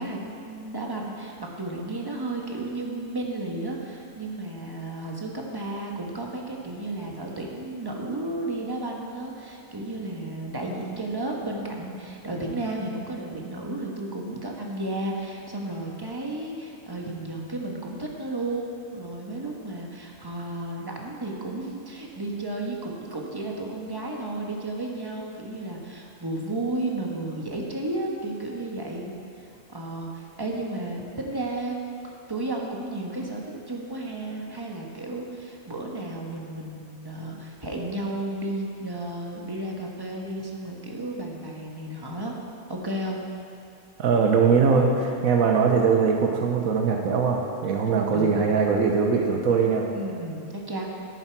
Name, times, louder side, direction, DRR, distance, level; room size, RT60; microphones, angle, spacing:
voice 1, 0.0-42.3 42.7-43.2 48.1-48.5 49.9-50.9, right 2 dB, 20° right, -1 dB, 1.2 m, -33 dB
voice 2, 44.0-49.9, right 5 dB, 90° right, 1 dB, 1.3 m, -21 dB
11.0 x 9.9 x 4.6 m, 2.4 s
omnidirectional pair, 1.4 m